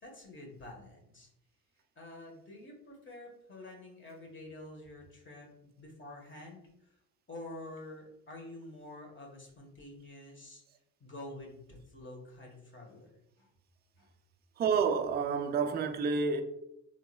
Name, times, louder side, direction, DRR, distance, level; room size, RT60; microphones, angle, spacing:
voice 1, 0.0-1.3 1.9-5.5 5.8-6.9 7.3-10.6 11.0-13.5 14.0-14.1, left 1 dB, 25° left, 1.4 m, -48 dB
voice 2, 14.6-16.4, right 5 dB, 25° right, 0.4 m, -29 dB
3.6 x 3.1 x 2.3 m
hypercardioid pair, 55°, 46 cm